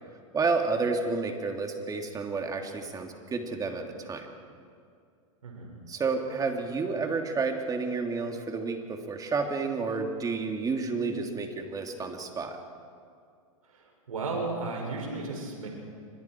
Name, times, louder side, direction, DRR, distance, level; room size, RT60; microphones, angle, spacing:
voice 1, 0.3-4.3 5.9-12.6, right 4 dB, 20° right, 3 dB, 3.1 m, -30 dB
voice 2, 5.4-5.7 13.7-15.7, right 3 dB, 90° right, 0 dB, 6.2 m, -34 dB
29.5 x 25.0 x 4.7 m, 2.3 s
hypercardioid pair, 110°, 17 cm